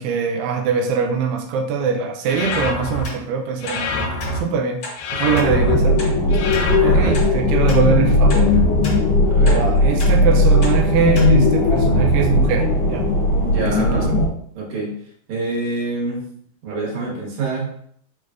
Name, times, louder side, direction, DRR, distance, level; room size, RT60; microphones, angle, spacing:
voice 1, 0.0-4.0 4.3-4.8 5.2-6.2 6.8-8.6 9.4-13.1 13.7-14.2, right 6 dB, 90° right, 2 dB, 1.7 m, -22 dB
sound 1, 2.3-3.0 3.6-4.4 5.0-5.7 6.3-7.1, left 2 dB, 80° left, 1.9 m, -25 dB
sound 2, 2.5-2.7 3.0-3.2 3.7-3.8 4.2-4.3 4.8-5.0 5.4-5.5 6.0-6.1 6.5-6.6 7.1-7.3 7.7-7.8 8.3-8.5 8.8-9.0 9.5-9.6 10.0-10.1 10.6-10.8 11.1-11.3 11.8-11.9, left 1 dB, 40° left, 1.9 m, -33 dB
voice 2, 5.1-5.5 6.7-7.2 9.2-9.7 13.4-14.1 14.5-14.9 15.3-16.3 16.6-17.7, right 3 dB, 60° right, -3 dB, 2.2 m, -26 dB
sound 3, 5.4-14.3, left 1 dB, 60° left, 2.1 m, -17 dB
5.5 x 3.2 x 2.5 m, 0.64 s
omnidirectional pair, 4.0 m